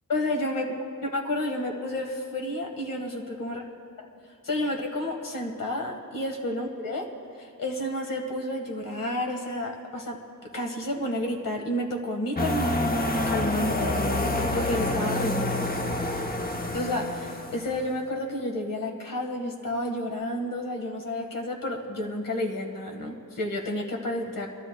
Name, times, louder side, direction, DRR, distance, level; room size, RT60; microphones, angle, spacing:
voice 1, 0.1-0.7 1.1-3.6 4.4-7.1 7.4-10.2 10.5-14.3 14.5-15.6 16.7-24.5, left 1 dB, 75° left, 2 dB, 1.6 m, -30 dB
sound 1, 12.4-17.9, left 1 dB, 25° left, 0.8 m, -28 dB
27.0 x 12.5 x 2.3 m, 2.3 s
wide cardioid pair, 120°, 33 cm